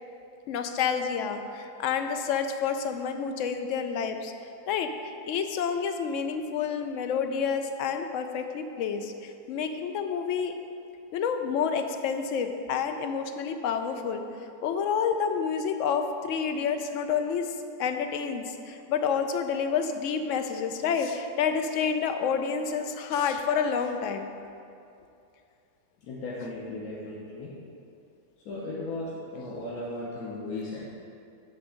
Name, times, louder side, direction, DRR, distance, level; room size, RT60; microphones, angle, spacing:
voice 1, 0.5-4.3 4.7-10.5 11.1-14.2 14.6-17.5 17.8-24.3, left 6 dB, 65° left, 6 dB, 0.8 m, -29 dB
voice 2, 26.0-27.6 28.4-30.8, left 2 dB, 90° left, -5 dB, 1.5 m, -36 dB
8.9 x 3.5 x 6.3 m, 2.6 s
omnidirectional pair, 1.5 m